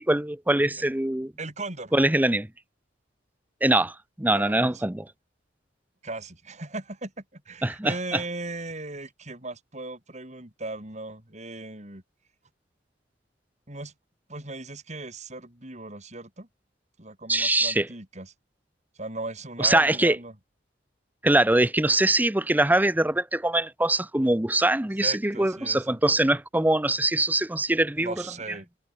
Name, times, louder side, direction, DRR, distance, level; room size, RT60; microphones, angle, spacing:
voice 1, 0.0-1.3 1.9-2.5 3.6-5.1 7.6-8.2 17.3-17.9 19.6-20.2 21.2-28.1, right 1 dB, 10° right, 0.7 m, -23 dB
voice 2, 1.4-1.9 4.3-4.8 6.0-12.0 13.7-13.9 14.3-16.5 17.0-18.3 19.0-20.3 25.0-26.0 28.0-28.7, right 2 dB, 40° right, 4.0 m, -37 dB
head